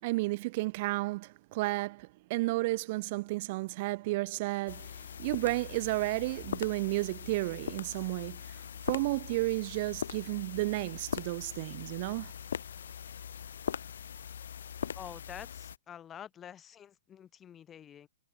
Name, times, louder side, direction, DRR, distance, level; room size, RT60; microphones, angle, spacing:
voice 1, 0.0-4.9 5.2-8.5 8.9-12.3, right 21 dB, 35° right, 0.8 m, -32 dB
sound 1, 4.7-15.8, left 8 dB, 65° left, 0.7 m, -41 dB
voice 2, 14.9-18.1, left 9 dB, 15° left, 4.1 m, -48 dB
hypercardioid pair, 160°, 0 cm